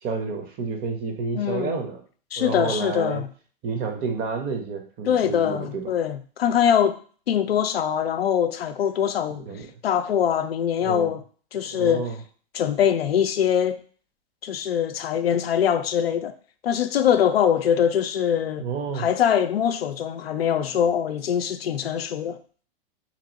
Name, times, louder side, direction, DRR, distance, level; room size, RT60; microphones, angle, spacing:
voice 1, 0.0-2.0 2.4-3.2 3.6-5.9 9.4-9.7 10.8-11.1 11.7-12.2 18.6-19.1, right 5 dB, 30° right, 0.8 m, -30 dB
voice 2, 1.3-1.8 2.3-3.3 5.1-7.0 7.3-9.4 9.8-11.2 11.5-12.1 12.5-13.8 14.4-16.3 16.6-18.7 18.9-22.4, left 9 dB, 90° left, 0.5 m, -23 dB
2.9 x 2.7 x 4.0 m
hypercardioid pair, 110°, 29 cm